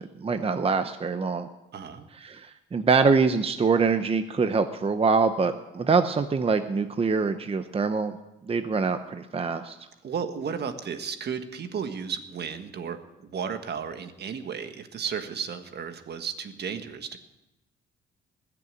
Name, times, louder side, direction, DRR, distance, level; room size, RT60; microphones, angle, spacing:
voice 1, 0.0-1.5 2.1-8.2 8.5-9.8, right 4 dB, 30° right, 9 dB, 0.8 m, -24 dB
voice 2, 1.7-2.1 10.0-17.2, right 6 dB, 55° right, 8 dB, 1.5 m, -34 dB
20.5 x 6.9 x 9.1 m, 0.95 s
cardioid pair, 90°, 20 cm